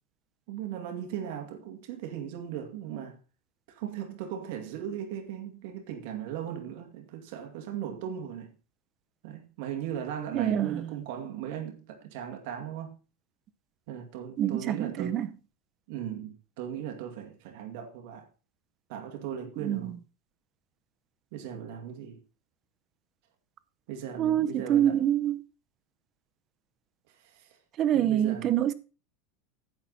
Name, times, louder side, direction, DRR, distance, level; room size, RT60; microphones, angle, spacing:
voice 1, 0.5-3.2 3.7-8.6 9.2-13.0 13.9-15.2 15.9-18.3 18.9-20.0 21.3-22.2 23.9-25.1 27.1-27.6 27.9-28.5, right 9 dB, 60° right, 2.3 m, -38 dB
voice 2, 10.3-10.9 14.4-15.3 19.6-19.9 24.2-25.4 27.8-28.7, right 10 dB, 35° right, 0.7 m, -26 dB
10.5 x 7.8 x 4.2 m
supercardioid pair, 155°, 0 cm